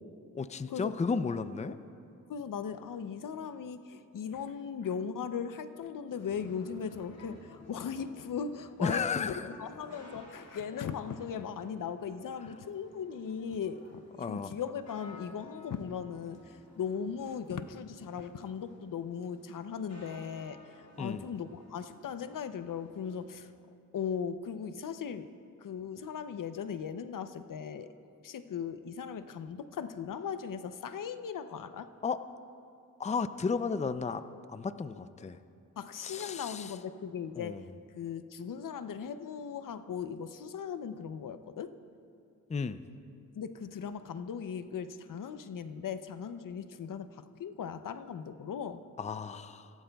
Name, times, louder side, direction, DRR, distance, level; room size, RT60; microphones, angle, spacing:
voice 1, 0.3-1.8 8.8-9.5 14.2-14.5 21.0-21.2 32.0-32.2 33.0-34.2 34.5-35.4 36.0-36.7 37.4-37.6 42.5-42.8 49.0-49.7, left 5 dB, 20° left, 12 dB, 0.4 m, -33 dB
voice 2, 2.3-14.0 14.3-20.6 21.0-23.5 23.9-25.3 25.6-27.9 28.2-31.9 35.8-37.6 37.9-41.7 43.3-48.8, left 7 dB, 75° left, 11 dB, 0.6 m, -38 dB
sound 1, 6.2-23.4, left 2 dB, 55° left, 2.3 m, -56 dB
23.5 x 16.5 x 2.3 m, 2.6 s
cardioid pair, 75°, 33 cm